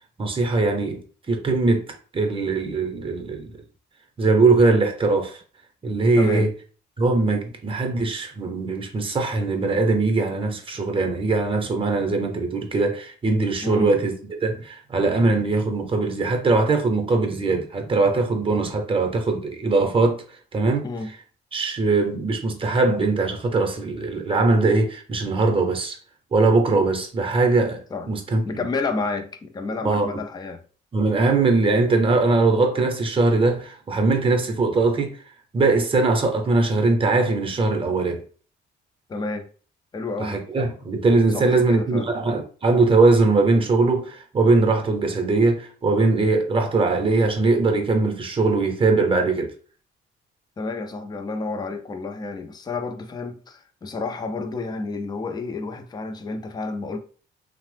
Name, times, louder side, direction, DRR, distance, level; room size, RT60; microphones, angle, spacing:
voice 1, 0.2-1.9 2.1-3.5 4.2-5.4 5.8-6.5 7.0-14.1 14.4-20.2 20.5-20.8 21.5-26.0 26.3-28.6 29.8-30.1 30.9-35.2 35.5-38.2 40.2-49.5, right 3 dB, 25° right, 0.7 m, -21 dB
voice 2, 6.1-6.5 13.6-13.9 20.8-21.1 27.9-28.1 28.4-30.6 39.1-39.5 39.9-40.4 41.3-42.1 50.6-57.0, left 3 dB, 20° left, 0.4 m, -30 dB
2.8 x 2.0 x 3.2 m
cardioid pair, 90°, 20 cm